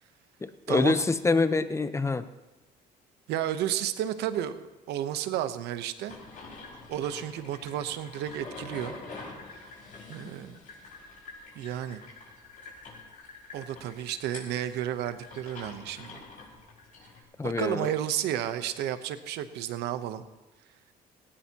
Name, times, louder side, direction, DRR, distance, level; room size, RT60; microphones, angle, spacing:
voice 1, 0.4-2.2 17.4-17.9, left 3 dB, 15° left, 11 dB, 0.8 m, -26 dB
voice 2, 3.3-6.2 6.9-8.9 9.5-9.7 10.1-10.6 11.5-12.0 13.5-16.2 17.4-20.2, right 11 dB, 85° right, 11 dB, 0.9 m, -32 dB
sound 1, 6.1-17.2, left 3 dB, 55° left, 5.3 m, -46 dB
17.5 x 17.5 x 2.9 m, 1.1 s
cardioid pair, 110°, 17 cm